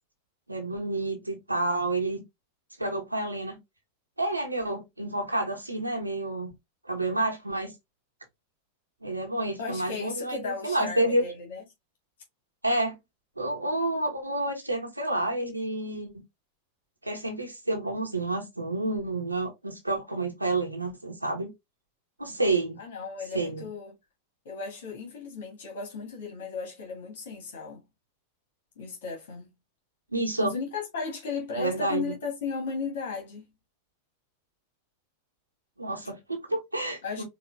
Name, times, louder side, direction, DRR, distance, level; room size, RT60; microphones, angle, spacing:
voice 1, 0.5-2.2 2.8-3.6 4.2-6.5 6.8-7.7 9.0-11.2 12.6-13.0 13.4-16.2 17.0-21.5 22.2-22.8 23.3-23.7 30.1-30.5 31.6-32.1 35.8-37.2, right 2 dB, 85° right, 1.0 m, -29 dB
voice 2, 9.6-11.6 22.8-24.0 24.4-27.8 28.7-29.5 30.4-33.4 37.0-37.2, left 5 dB, 60° left, 1.7 m, -35 dB
4.8 x 2.7 x 2.6 m
figure-of-eight pair, 90°, 0 cm